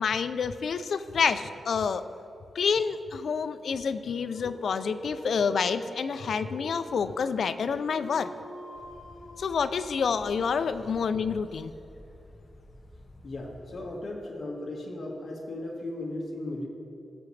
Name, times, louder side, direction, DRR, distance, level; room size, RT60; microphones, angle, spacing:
voice 1, 0.0-2.0 2.5-8.3 9.4-11.7, left 6 dB, 65° left, 11 dB, 0.4 m, -28 dB
Dog, 4.1-10.5, equal, 90° left, 1.5 m, -44 dB
sound 1, 8.7-13.9, left 1 dB, 30° left, 0.8 m, -51 dB
voice 2, 13.2-16.7, left 1 dB, 50° left, -3 dB, 1.7 m, -36 dB
17.5 x 7.0 x 3.3 m, 2.8 s
wide cardioid pair, 155°, 0 cm